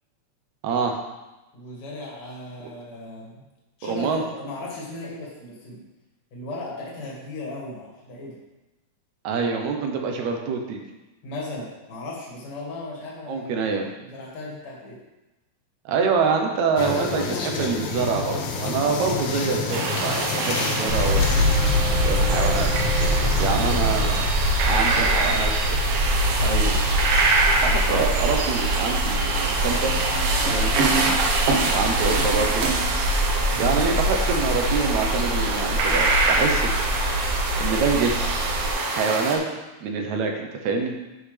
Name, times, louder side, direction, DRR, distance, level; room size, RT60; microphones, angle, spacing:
voice 1, 0.6-1.0 3.9-4.2 9.2-10.8 13.3-13.8 15.9-21.4 22.1-22.7 23.4-24.3 24.7-25.5 26.4-26.8 27.6-29.9 30.4-31.1 31.7-32.6 33.6-36.7 37.6-38.1 39.0-39.4 39.8-40.9, right 5 dB, 70° right, 3 dB, 1.9 m, -25 dB
voice 2, 1.5-3.4 3.8-5.9 6.3-8.4 11.2-13.5 14.0-15.0 23.4-23.8 24.9-25.4 33.5-33.9, left 1 dB, 45° left, -5 dB, 2.7 m, -36 dB
sound 1, 16.8-24.2, left 4 dB, 90° left, 2.6 m, -29 dB
sound 2, 19.7-39.4, right 3 dB, 85° right, 2.9 m, -25 dB
sound 3, 20.9-38.7, equal, 45° right, 2.3 m, -25 dB
12.0 x 5.6 x 3.4 m, 1.1 s
omnidirectional pair, 4.0 m